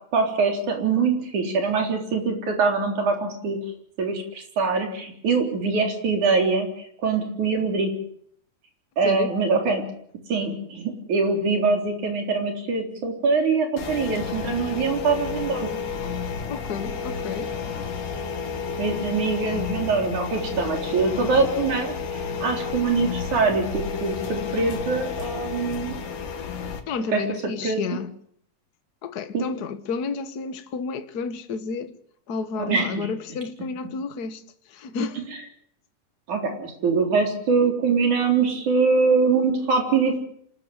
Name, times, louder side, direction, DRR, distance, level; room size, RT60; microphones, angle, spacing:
voice 1, 0.1-3.6 4.0-6.7 7.0-7.9 9.0-9.9 10.3-15.7 18.8-26.0 27.1-27.2 27.6-27.8 29.3-29.4 32.6-33.1 36.3-40.2, right 4 dB, 65° right, 5.1 m, -23 dB
voice 2, 9.0-9.3 16.5-17.5 26.9-28.1 29.0-31.9 32.3-35.3, left 5 dB, 50° left, 1.2 m, -31 dB
sound 1, 13.8-26.8, left 5 dB, 75° left, 3.4 m, -31 dB
26.0 x 13.5 x 9.1 m
omnidirectional pair, 3.8 m